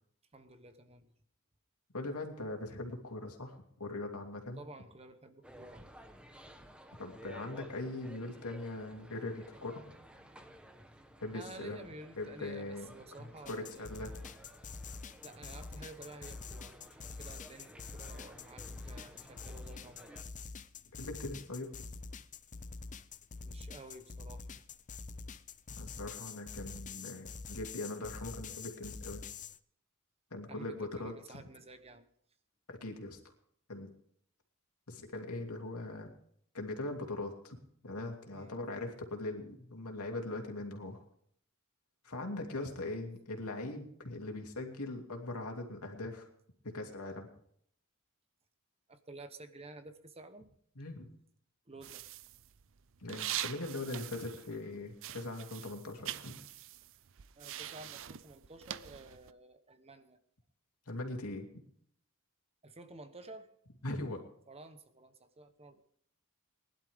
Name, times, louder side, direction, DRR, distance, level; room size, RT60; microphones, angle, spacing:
voice 1, 0.3-1.0 4.6-5.9 11.3-13.9 15.2-20.3 23.4-24.5 30.5-32.1 38.3-38.6 42.4-42.9 48.9-50.5 51.7-52.0 57.4-60.2 62.6-63.5 64.5-65.8, right 2 dB, 25° right, 9 dB, 1.1 m, -52 dB
voice 2, 1.9-4.6 7.0-9.8 11.2-11.8 12.2-12.9 13.2-14.1 21.0-21.9 25.8-29.2 30.3-31.4 32.7-33.2 33.7-33.9 34.9-36.1 36.5-37.6 37.8-41.0 42.0-46.3 46.6-47.3 50.8-51.1 53.0-56.4 60.9-61.5 63.8-64.2, left 2 dB, 80° left, 2 dB, 2.8 m, -41 dB
sound 1, 5.4-20.2, equal, 5° right, 1.1 m, -55 dB
sound 2, 13.4-29.6, left 4 dB, 35° left, 0.6 m, -46 dB
sound 3, 51.8-54.7 55.0-59.3, right 12 dB, 60° right, 0.6 m, -43 dB
20.5 x 11.5 x 3.6 m, 0.67 s
head